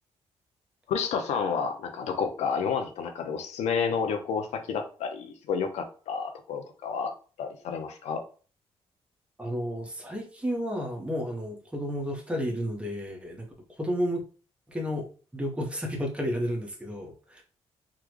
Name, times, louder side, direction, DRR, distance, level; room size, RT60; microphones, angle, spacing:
voice 1, 0.9-7.1 7.4-8.2, left 6 dB, 90° left, 6 dB, 0.7 m, -30 dB
voice 2, 9.4-14.2 14.7-15.1 15.3-17.4, equal, 10° right, 0 dB, 1.0 m, -32 dB
3.8 x 2.2 x 3.1 m, 0.38 s
cardioid pair, 95°, 11 cm